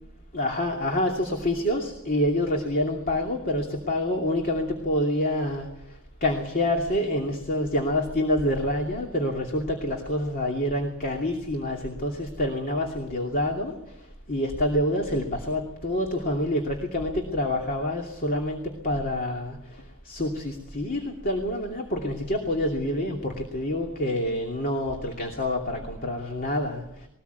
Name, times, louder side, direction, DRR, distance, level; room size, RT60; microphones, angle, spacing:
voice 1, 0.3-27.1, left 1 dB, 40° left, 1 dB, 2.7 m, -27 dB
22.0 x 18.5 x 8.2 m, 0.82 s
head